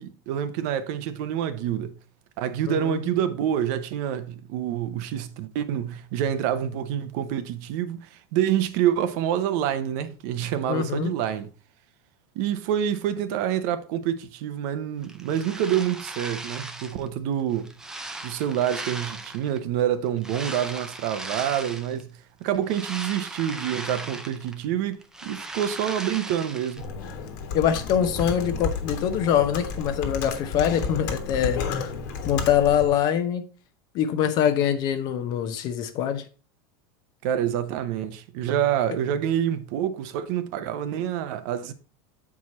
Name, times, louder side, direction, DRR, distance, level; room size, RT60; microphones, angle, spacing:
voice 1, 0.0-1.9 2.4-11.5 12.4-17.7 18.2-22.1 22.4-26.9 37.2-41.7, right 10 dB, 50° right, 0.7 m, -27 dB
voice 2, 2.7-3.0 10.7-11.1 27.5-31.9 32.2-33.4 33.9-36.2, left 9 dB, 35° left, 0.7 m, -24 dB
sound 1, 15.0-17.1 17.5-19.6 20.2-22.0 22.4-24.6 24.9-26.8, right 2 dB, 5° right, 0.4 m, -37 dB
Computer keyboard, 26.8-33.0, left 5 dB, 55° left, 1.4 m, -32 dB
7.3 x 4.7 x 4.1 m
supercardioid pair, 170°, 12 cm